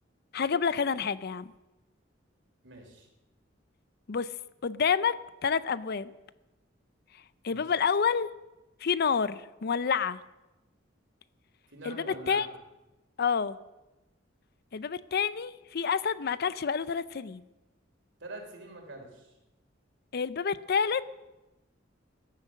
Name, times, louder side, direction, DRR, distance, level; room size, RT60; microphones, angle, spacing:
voice 1, 0.3-1.5 4.1-4.3 4.6-6.1 7.4-8.3 8.8-10.2 11.8-12.5 13.2-13.6 14.7-17.4 20.1-21.0, left 6 dB, 55° left, 17 dB, 0.5 m, -28 dB
voice 2, 2.6-3.1 7.5-7.6 11.7-12.5 18.2-19.3, right 2 dB, 70° right, 3 dB, 3.2 m, -44 dB
14.5 x 10.5 x 6.3 m, 1.0 s
head